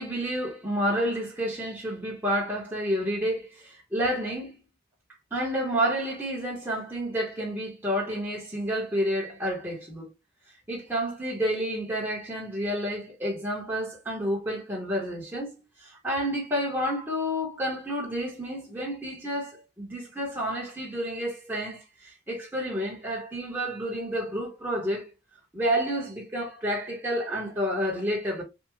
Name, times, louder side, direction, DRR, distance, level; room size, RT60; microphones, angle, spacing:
voice 1, 0.0-4.6 5.3-10.1 10.7-15.5 15.8-25.1 25.5-28.4, equal, 10° right, 1.1 m, -30 dB
3.5 x 2.3 x 3.1 m
head